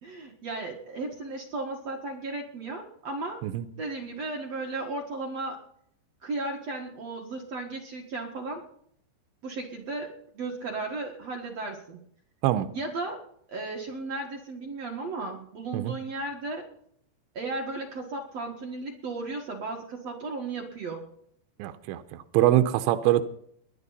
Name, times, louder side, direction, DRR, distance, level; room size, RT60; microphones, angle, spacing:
voice 1, 0.0-3.4 3.8-5.6 6.2-8.6 9.4-12.0 12.7-13.2 13.5-16.7 17.3-21.1, right 3 dB, 55° right, 1 dB, 2.0 m, -35 dB
voice 2, 21.6-22.0 22.3-23.2, right 13 dB, 85° right, 8 dB, 3.0 m, -23 dB
21.0 x 11.0 x 4.1 m, 0.66 s
omnidirectional pair, 5.2 m